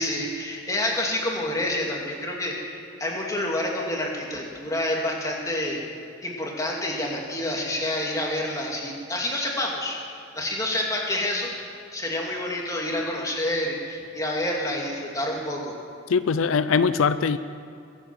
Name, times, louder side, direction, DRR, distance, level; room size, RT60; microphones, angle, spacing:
voice 1, 0.0-5.8 6.2-10.0 10.3-15.7, left 1 dB, 15° left, -1 dB, 2.4 m, -28 dB
voice 2, 16.1-17.4, left 5 dB, 85° left, 13 dB, 0.5 m, -21 dB
21.5 x 8.7 x 7.4 m, 2.6 s
head